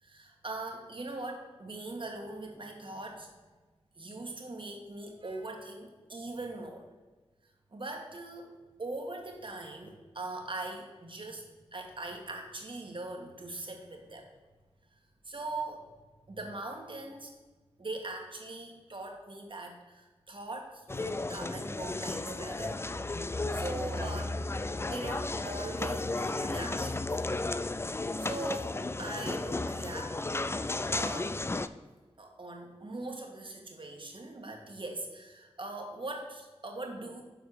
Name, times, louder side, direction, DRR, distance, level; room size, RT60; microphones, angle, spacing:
voice 1, 0.0-3.3 4.0-6.9 7.7-14.3 15.3-15.8 16.3-17.3 17.8-22.8 23.5-24.4 24.8-27.0 28.2-30.1 30.9-31.5 32.2-37.2, right 2 dB, 50° right, 2 dB, 1.7 m, -41 dB
sound 1, 20.9-31.7, left 2 dB, 25° left, 0.4 m, -34 dB
7.2 x 4.6 x 6.5 m, 1.3 s
cardioid pair, 50°, 11 cm